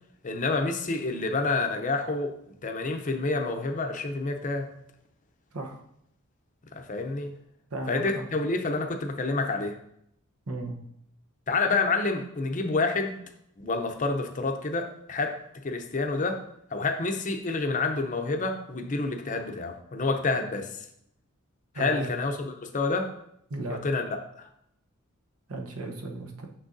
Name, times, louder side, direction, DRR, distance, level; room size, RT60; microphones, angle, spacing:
voice 1, 0.2-2.3 2.6-4.7 6.7-7.3 7.9-9.8 11.5-13.2 13.6-15.4 15.6-16.4 16.7-20.9 21.7-23.1 23.7-24.5, left 3 dB, 35° left, 5 dB, 0.6 m, -28 dB
voice 2, 7.7-8.3 10.5-10.8 21.7-22.0 23.5-23.8 25.5-26.5, right 2 dB, 90° right, 3 dB, 0.9 m, -35 dB
6.2 x 6.1 x 2.6 m, 0.74 s
head